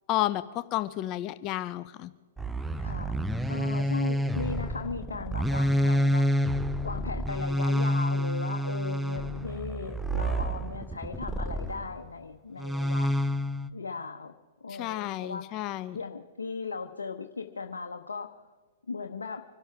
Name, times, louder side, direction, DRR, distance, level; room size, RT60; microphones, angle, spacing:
voice 1, 0.1-2.1 14.8-16.0, left 14 dB, 35° left, 12 dB, 0.6 m, -31 dB
sound 1, 2.4-11.9 12.6-13.7, equal, 5° right, 0.6 m, -28 dB
voice 2, 2.8-3.2 3.5-6.4 6.8-13.1 13.7-14.4 14.6-18.4 18.9-19.4, left 4 dB, 85° left, 3 dB, 1.0 m, -37 dB
26.0 x 12.5 x 3.5 m, 1.4 s
hypercardioid pair, 120°, 0 cm